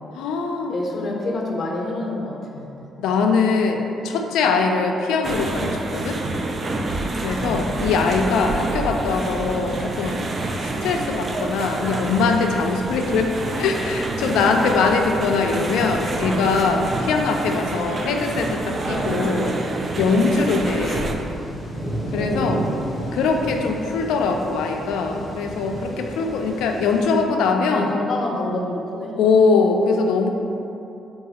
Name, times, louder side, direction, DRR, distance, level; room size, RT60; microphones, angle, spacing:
voice 1, 0.1-0.7 3.0-6.2 7.2-10.3 10.8-19.5 20.0-21.2 22.1-22.6 23.1-27.9 29.2-30.3, left 4 dB, 90° left, 3 dB, 0.3 m, -22 dB
voice 2, 0.7-2.7 7.3-7.7 16.0-16.4 22.1-22.9 26.2-26.4 27.7-29.2, left 2 dB, 45° left, -1 dB, 0.6 m, -28 dB
sound 1, 5.2-21.1, right 2 dB, 40° right, 0.3 m, -27 dB
sound 2, 9.6-27.2, right 1 dB, 5° right, 0.8 m, -35 dB
3.8 x 2.4 x 4.0 m, 2.8 s
cardioid pair, 90°, 0 cm